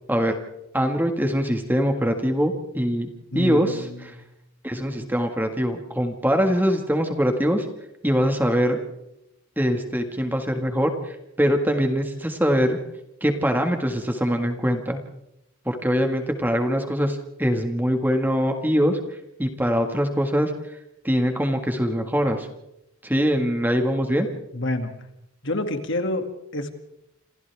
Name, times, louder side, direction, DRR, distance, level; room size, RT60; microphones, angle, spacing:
voice 1, 0.7-3.1 3.3-4.2 4.6-7.7 8.0-8.8 9.6-12.8 13.2-15.0 15.7-19.0 19.4-20.5 21.0-22.5 23.0-24.3, equal, 10° right, 5 dB, 1.8 m, -23 dB
voice 2, 3.3-4.2 24.5-24.9 25.4-26.7, left 1 dB, 55° left, 6 dB, 2.4 m, -28 dB
28.0 x 27.5 x 3.6 m, 0.86 s
head